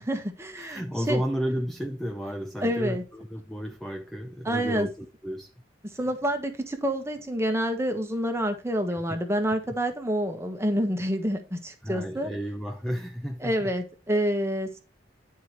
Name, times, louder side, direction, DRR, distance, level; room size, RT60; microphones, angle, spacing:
voice 1, 0.0-1.2 2.6-3.0 4.4-4.9 5.9-12.3 13.4-14.8, equal, 15° right, 1.3 m, -28 dB
voice 2, 0.6-5.5 8.9-9.0 11.8-13.7, equal, ahead, 0.6 m, -32 dB
10.5 x 4.8 x 4.4 m
head